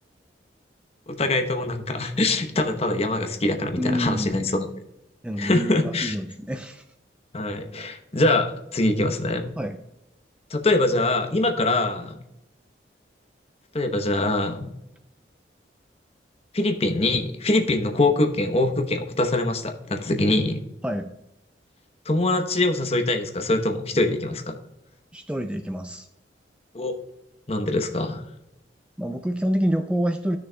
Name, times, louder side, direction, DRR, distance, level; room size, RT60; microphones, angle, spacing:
voice 1, 1.1-4.7 5.4-6.1 7.3-9.4 10.5-12.2 13.7-14.7 16.5-20.6 22.1-24.6 26.7-26.9 27.5-28.2, left 2 dB, 35° left, 6 dB, 0.8 m, -23 dB
voice 2, 3.7-4.4 5.2-6.8 9.6-9.8 20.8-21.1 25.1-26.1 29.0-30.4, equal, 5° right, 6 dB, 0.3 m, -27 dB
13.5 x 6.3 x 2.2 m, 0.86 s
head